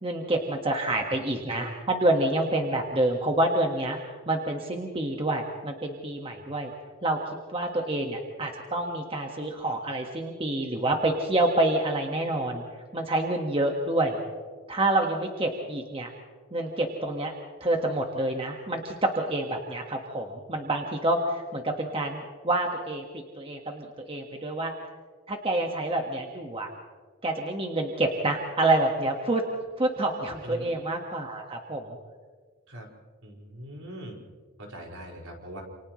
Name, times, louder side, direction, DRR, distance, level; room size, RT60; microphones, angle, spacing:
voice 1, 0.0-6.7 7.0-7.2 7.5-12.6 12.9-14.2 14.7-16.1 16.5-17.3 17.6-24.7 25.3-26.7 27.2-29.4 29.8-32.0, right 2 dB, 25° right, 2 dB, 1.6 m, -27 dB
voice 2, 33.2-34.2 34.6-35.6, equal, 70° right, -1 dB, 5.5 m, -41 dB
28.5 x 28.5 x 3.2 m, 1.5 s
head